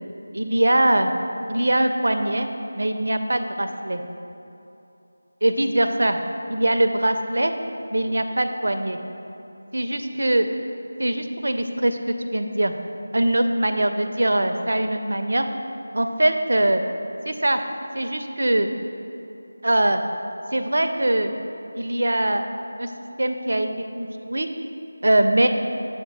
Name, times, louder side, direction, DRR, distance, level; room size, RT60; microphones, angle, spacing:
voice 1, 0.3-1.1 1.5-2.5 2.7-4.0 5.4-6.2 6.5-7.5 7.9-9.0 9.7-10.5 11.0-12.7 13.1-15.5 15.9-16.8 17.3-17.6 17.9-18.7 19.6-20.0 20.5-21.3 21.7-22.4 22.8-22.9 23.2-23.7 24.0-24.5 25.0-25.5, right 1 dB, 75° right, 7 dB, 0.5 m, -22 dB
6.7 x 4.4 x 4.7 m, 2.8 s
figure-of-eight pair, 170°, 0 cm